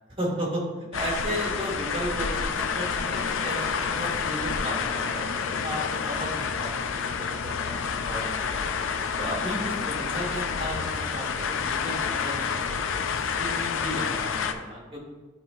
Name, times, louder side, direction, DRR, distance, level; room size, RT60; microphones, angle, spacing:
voice 1, 0.2-0.6 0.9-6.7 7.0-7.8 8.0-8.3 9.2-12.8 13.1-15.1, equal, 25° right, -4 dB, 1.8 m, -34 dB
sound 1, 0.9-14.5, left 6 dB, 75° left, 0.4 m, -29 dB
11.0 x 3.7 x 2.5 m, 1.3 s
head